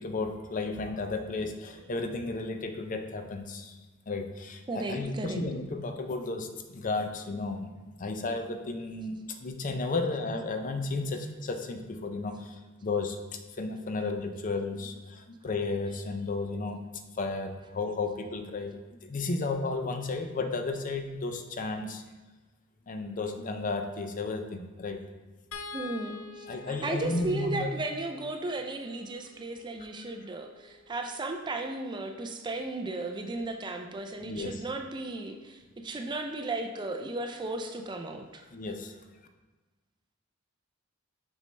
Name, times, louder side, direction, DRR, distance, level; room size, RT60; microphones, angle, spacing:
voice 1, 0.0-3.8 4.1-7.7 8.0-13.2 13.6-16.8 17.2-22.0 22.9-25.0 26.5-27.7 34.2-34.6 38.5-38.9, left 3 dB, 40° left, 6 dB, 0.5 m, -33 dB
voice 2, 4.7-5.4 25.7-38.4, right 2 dB, 20° right, 5 dB, 0.4 m, -35 dB
sound 1, 25.5-31.8 33.4-33.5 33.9-34.0, left 4 dB, 90° left, 0.6 m, -48 dB
6.1 x 5.3 x 3.3 m, 1.2 s
head